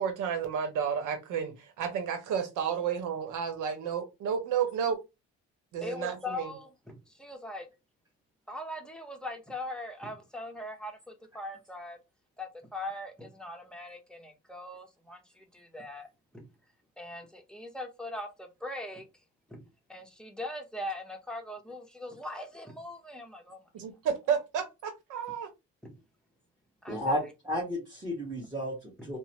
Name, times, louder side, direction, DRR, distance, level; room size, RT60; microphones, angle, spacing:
voice 1, 0.0-5.0 5.7-6.5 23.7-25.5, right 7 dB, 85° right, 0.8 m, -31 dB
voice 2, 5.8-7.7 8.5-12.0 12.4-16.1 16.3-16.5 17.0-19.1 19.5-23.6 25.8-26.0 26.8-27.0 29.0-29.1, left 1 dB, 5° left, 0.8 m, -41 dB
voice 3, 26.9-29.2, equal, 10° right, 1.3 m, -33 dB
2.9 x 2.1 x 2.8 m
cardioid pair, 90°, 30 cm